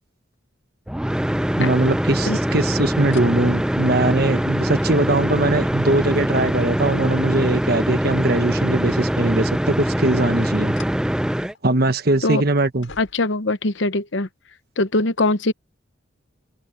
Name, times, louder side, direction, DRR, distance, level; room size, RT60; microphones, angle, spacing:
sound 1, 0.9-11.5, equal, 5° right, 0.3 m, -23 dB
voice 1, 1.6-10.8 11.6-12.9, right 2 dB, 50° right, 1.3 m, -21 dB
sound 2, 3.1-3.3 3.8-8.3 8.6-9.5 10.5-11.7 12.2-12.4 12.8-13.5 14.5-14.6, left 3 dB, 90° left, 6.0 m, -47 dB
voice 2, 13.0-14.3 14.8-15.5, left 2 dB, 65° left, 0.9 m, -21 dB
open air
head